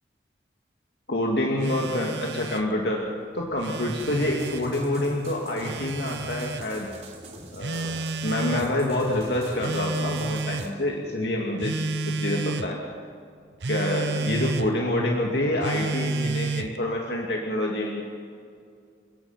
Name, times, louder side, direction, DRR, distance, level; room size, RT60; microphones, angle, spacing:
voice 1, 1.1-3.1 3.3-6.9 7.5-11.8 12.1-12.8 13.7-18.0, left 1 dB, 75° left, -1 dB, 2.4 m, -27 dB
Telephone, 1.6-2.7 3.4-4.7 5.6-6.7 7.6-8.7 9.6-10.7 11.6-12.7 13.6-14.7 15.6-16.8, right 3 dB, 75° right, 0.8 m, -30 dB
sound 1, 4.0-10.7, right 2 dB, 35° right, 3.3 m, -44 dB
30.0 x 17.5 x 5.9 m, 2.3 s
head